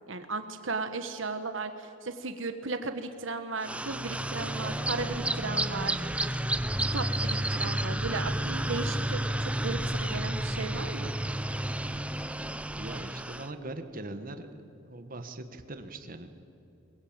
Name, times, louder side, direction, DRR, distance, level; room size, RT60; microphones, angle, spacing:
voice 1, 0.1-6.0 6.9-11.1, right 3 dB, 70° right, 9 dB, 1.3 m, -36 dB
sound 1, 3.6-13.5, right 1 dB, 5° right, 0.7 m, -31 dB
voice 2, 12.8-14.5 14.8-16.3, right 2 dB, 45° right, 8 dB, 1.5 m, -41 dB
22.5 x 21.5 x 8.9 m, 2.8 s
head